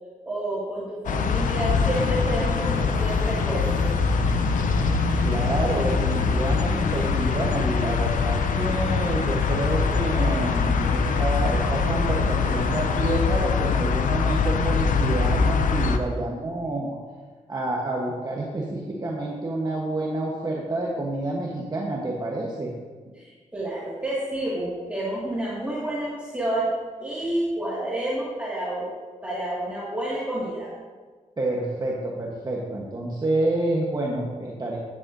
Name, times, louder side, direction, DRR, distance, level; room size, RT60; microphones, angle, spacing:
voice 1, 0.3-3.9 23.2-26.7 27.0-28.9 29.2-30.7, right 1 dB, 10° right, -8 dB, 2.1 m, -29 dB
sound 1, 1.0-16.0, left 5 dB, 85° left, 0.6 m, -23 dB
sound 2, 1.8-13.4, equal, 90° right, 1.5 m, -36 dB
voice 2, 5.2-17.0 17.5-22.7 31.4-34.8, right 2 dB, 30° right, -2 dB, 1.2 m, -28 dB
11.5 x 9.8 x 2.7 m, 1.5 s
wide cardioid pair, 100°, 13 cm